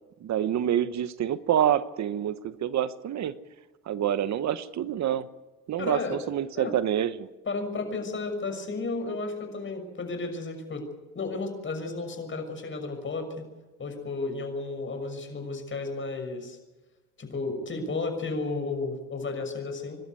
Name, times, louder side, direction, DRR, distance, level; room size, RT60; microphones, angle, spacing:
voice 1, 0.2-3.3 3.9-5.3 5.7-7.3, right 10 dB, 65° right, 13 dB, 1.0 m, -27 dB
voice 2, 5.8-6.2 6.5-6.7 7.5-10.8 11.1-13.4 13.8-16.6 17.2-20.0, left 3 dB, 40° left, 5 dB, 6.4 m, -33 dB
26.0 x 12.5 x 9.7 m, 1.2 s
cardioid pair, 90°, 30 cm